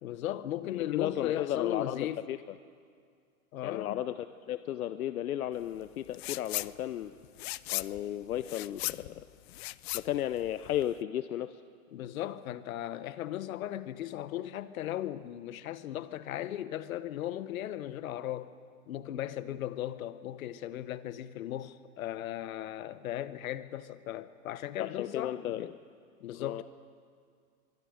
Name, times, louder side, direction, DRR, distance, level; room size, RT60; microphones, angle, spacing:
voice 1, 0.0-2.2 3.5-4.0 11.9-18.5 18.9-25.7 26.2-26.6, left 12 dB, 70° left, 1.2 m, -37 dB
voice 2, 0.9-2.4 3.6-7.1 7.7-9.2 9.9-11.6 24.8-25.7 26.4-26.6, left 12 dB, 85° left, 0.8 m, -34 dB
sound 1, 6.1-6.7 7.0-11.0, left 18 dB, 50° left, 0.5 m, -37 dB
24.0 x 23.0 x 5.1 m
hypercardioid pair, 135°, 43 cm